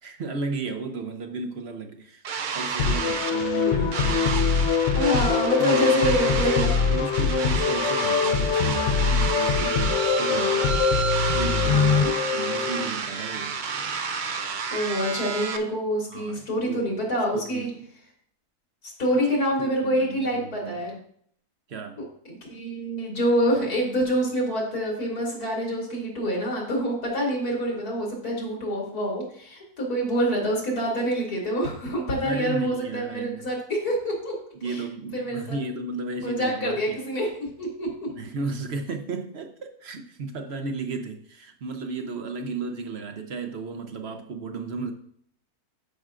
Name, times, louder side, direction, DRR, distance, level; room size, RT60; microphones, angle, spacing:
voice 1, 0.0-4.6 5.6-10.7 11.4-12.0 12.3-13.6 16.1-16.8 17.3-17.9 19.1-19.3 19.6-20.9 21.7-22.0 32.2-33.5 34.6-37.0 38.1-44.9, right 4 dB, 50° right, 6 dB, 0.9 m, -34 dB
sound 1, 2.2-15.6, right 5 dB, 75° right, 0.4 m, -30 dB
sound 2, 2.8-12.9, left 6 dB, 65° left, 0.7 m, -23 dB
voice 2, 4.9-6.7 11.7-12.1 14.7-17.7 19.0-20.9 22.5-34.3 34.6-34.8 35.1-35.6 36.2-37.9, equal, 80° left, -3 dB, 3.2 m, -26 dB
13.0 x 6.0 x 2.5 m, 0.65 s
omnidirectional pair, 1.6 m